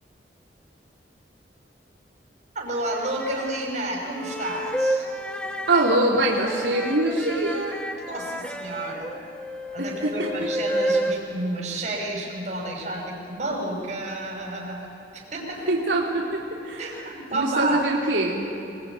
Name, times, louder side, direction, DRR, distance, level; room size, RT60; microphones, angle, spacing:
voice 1, 2.5-5.1 8.1-9.2 9.7-15.7 16.8-17.8, right 2 dB, 40° right, -1 dB, 6.0 m, -31 dB
sound 1, 2.9-3.6 4.1-11.1, equal, 5° left, 1.3 m, -30 dB
voice 2, 5.7-7.8 9.8-10.3 15.7-17.0 17.3-18.5, right 2 dB, 85° right, -2 dB, 3.3 m, -23 dB
26.5 x 21.0 x 9.6 m, 3.0 s
head